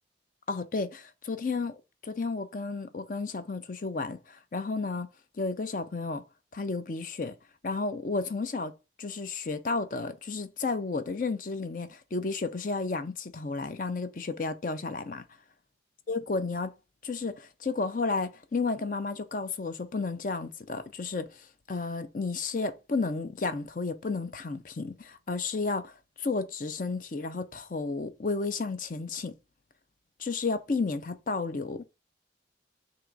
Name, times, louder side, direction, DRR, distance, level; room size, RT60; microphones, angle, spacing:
voice 1, 0.5-5.1 5.4-6.2 6.5-7.3 7.6-8.7 9.0-15.2 16.1-16.7 17.0-29.3 30.2-31.8, left 3 dB, 45° left, 0.5 m, -32 dB
3.7 x 2.9 x 4.6 m
head